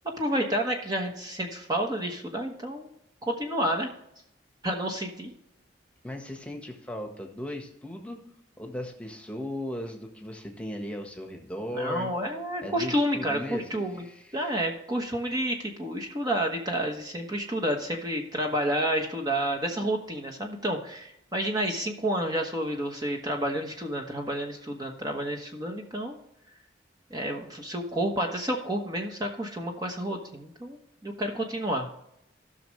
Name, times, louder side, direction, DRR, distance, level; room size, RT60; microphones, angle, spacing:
voice 1, 0.2-2.9 3.3-3.9 4.6-5.3 11.7-14.1 14.3-26.2 27.1-31.9, right 1 dB, 20° right, 2 dB, 1.2 m, -30 dB
voice 2, 6.0-8.2 8.6-12.1 12.6-14.4, left 1 dB, 5° left, 3 dB, 1.4 m, -37 dB
16.0 x 6.3 x 3.2 m, 0.78 s
head